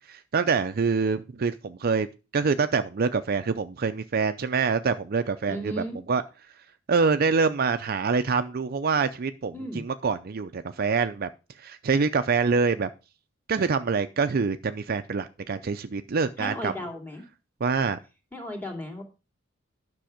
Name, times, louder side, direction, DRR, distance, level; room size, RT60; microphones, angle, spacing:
voice 1, 0.1-2.1 2.3-6.2 6.9-11.3 11.6-12.9 13.5-16.7 17.6-18.0, right 5 dB, 50° right, 10 dB, 0.5 m, -25 dB
voice 2, 5.5-6.0 9.5-9.8 16.4-17.2 18.3-19.0, left 1 dB, 10° left, 2 dB, 2.4 m, -35 dB
10.5 x 6.2 x 5.0 m, 0.31 s
head